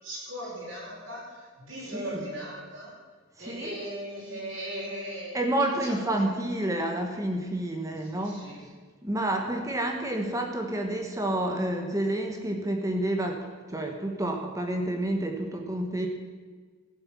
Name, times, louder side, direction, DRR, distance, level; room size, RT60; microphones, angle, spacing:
voice 1, 0.0-2.9 3.4-6.2 8.0-8.6, right 1 dB, 70° right, -8 dB, 5.2 m, -38 dB
voice 2, 1.8-2.3 3.4-3.8 5.3-8.5 9.0-16.1, right 1 dB, 15° right, 3 dB, 1.2 m, -29 dB
15.0 x 7.8 x 7.4 m, 1.5 s
head